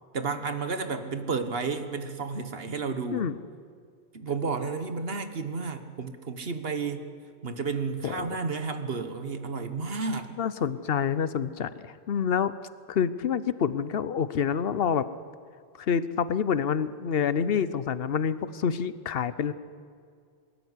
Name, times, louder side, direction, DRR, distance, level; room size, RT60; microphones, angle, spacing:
voice 1, 0.1-3.3 4.1-7.1 7.4-10.3, right 4 dB, 70° right, 8 dB, 1.6 m, -32 dB
voice 2, 10.4-12.5 12.9-15.1 15.8-19.5, left 7 dB, 70° left, 15 dB, 1.0 m, -27 dB
21.5 x 13.5 x 9.8 m, 2.2 s
omnidirectional pair, 1.0 m